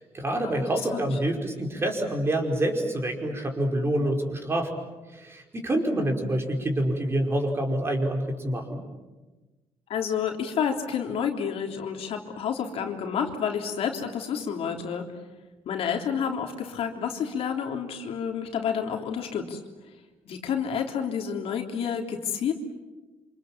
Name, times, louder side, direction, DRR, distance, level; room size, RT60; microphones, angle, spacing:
voice 1, 0.1-4.7 5.1-8.8, right 1 dB, 25° right, 2 dB, 4.9 m, -27 dB
voice 2, 9.9-15.0 15.6-19.6 20.2-22.5, left 7 dB, 65° left, 3 dB, 3.4 m, -29 dB
27.5 x 26.5 x 7.5 m, 1.2 s
cardioid pair, 120°, 11 cm